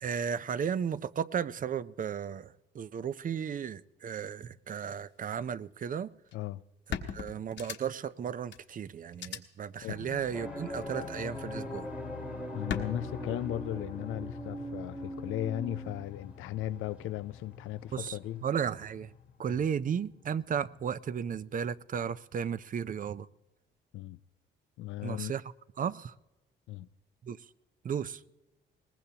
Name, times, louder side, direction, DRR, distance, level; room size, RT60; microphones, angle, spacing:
voice 1, 0.0-2.5 2.7-6.1 7.1-11.9 17.9-18.1 18.4-19.1 19.4-23.3 25.0-25.4 25.8-26.1 27.3-27.4 27.8-28.2, right 7 dB, 45° right, 0.5 m, -34 dB
sound 1, 6.3-6.4 6.9-8.1 8.5-8.6 9.1-9.4 10.7-11.2 12.7-12.8, left 7 dB, 65° left, 1.3 m, -37 dB
voice 2, 9.8-10.1 12.5-18.5 19.5-19.6 23.9-24.2 24.8-25.3 26.7-26.9, left 13 dB, 85° left, 0.5 m, -37 dB
sound 2, 9.8-21.1, left 7 dB, 45° left, 0.7 m, -46 dB
sound 3, 10.3-18.2 18.5-18.8, right 1 dB, 5° right, 1.4 m, -42 dB
22.0 x 19.0 x 2.9 m
cardioid pair, 90°, 20 cm